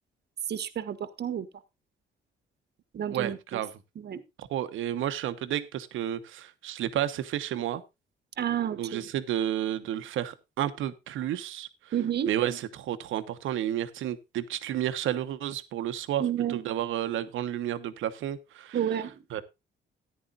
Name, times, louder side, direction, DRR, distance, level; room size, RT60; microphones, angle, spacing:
voice 1, 0.5-1.5 2.9-3.6 4.0-4.2 8.4-9.1 11.9-12.3 16.2-16.6 18.7-19.2, right 10 dB, 55° right, 1.3 m, -30 dB
voice 2, 3.1-3.7 4.4-7.8 8.8-11.7 12.3-16.2 16.5-18.8 19.3-19.4, right 11 dB, 80° right, 1.1 m, -31 dB
14.0 x 10.0 x 2.5 m
cardioid pair, 90°, 20 cm